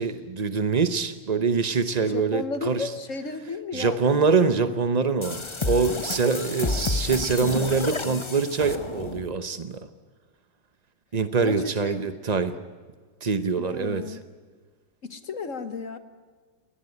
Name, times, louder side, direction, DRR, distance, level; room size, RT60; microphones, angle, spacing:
voice 1, 0.0-2.9 3.7-9.9 11.1-12.6 13.2-14.2, right 5 dB, 60° right, 10 dB, 0.4 m, -24 dB
voice 2, 2.0-4.3 4.6-4.7 11.4-12.0 13.5-14.3 15.0-16.0, left 4 dB, 45° left, 10 dB, 1.4 m, -34 dB
sound 1, 5.2-9.4, left 3 dB, 25° left, 0.6 m, -30 dB
23.5 x 18.5 x 9.7 m, 1.5 s
omnidirectional pair, 2.2 m